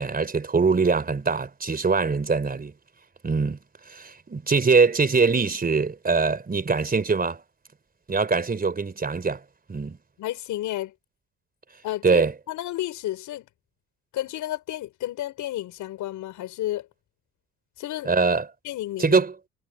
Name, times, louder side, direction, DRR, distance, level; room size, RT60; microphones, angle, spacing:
voice 1, 0.0-2.7 3.2-3.6 3.9-7.4 8.1-9.4 9.7-10.0 12.0-12.3 18.0-18.4 19.0-19.3, right 4 dB, 30° right, 4.1 m, -22 dB
voice 2, 10.2-10.9 11.8-13.5 14.1-16.9 17.8-18.1 18.6-19.2, left 14 dB, 85° left, 6.3 m, -32 dB
cardioid pair, 90°, 30 cm